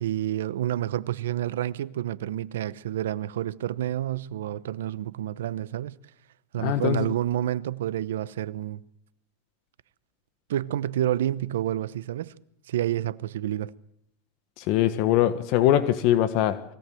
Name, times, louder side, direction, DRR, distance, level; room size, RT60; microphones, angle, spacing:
voice 1, 0.0-6.0 6.5-8.8 10.5-12.3 12.7-13.7, right 12 dB, 85° right, 0.8 m, -29 dB
voice 2, 6.6-7.0 14.6-16.6, left 12 dB, 60° left, 1.5 m, -22 dB
23.0 x 17.5 x 7.7 m
hypercardioid pair, 100°, 0 cm